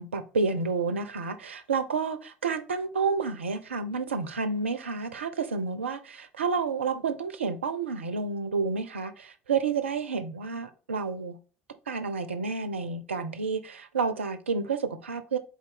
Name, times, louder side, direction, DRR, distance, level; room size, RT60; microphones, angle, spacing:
voice 1, 0.0-11.4 11.9-15.4, right 4 dB, 80° right, 0.4 m, -30 dB
4.1 x 3.5 x 3.5 m
figure-of-eight pair, 60°, 6 cm